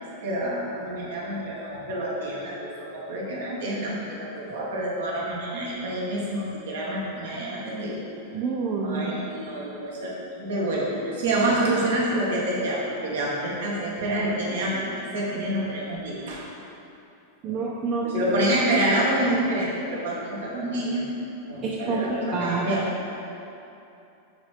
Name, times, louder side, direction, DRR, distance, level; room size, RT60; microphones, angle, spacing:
voice 1, 0.0-4.0 4.3-8.0 8.8-10.1 10.4-14.8 15.1-16.4 17.4-17.6 18.0-21.1 21.5-22.9, right 1 dB, 60° right, -5 dB, 1.6 m, -27 dB
voice 2, 8.3-9.0 17.4-18.1 21.6-22.8, right 4 dB, 35° right, -3 dB, 0.6 m, -28 dB
7.1 x 4.1 x 4.9 m, 2.8 s
figure-of-eight pair, 90°, 0 cm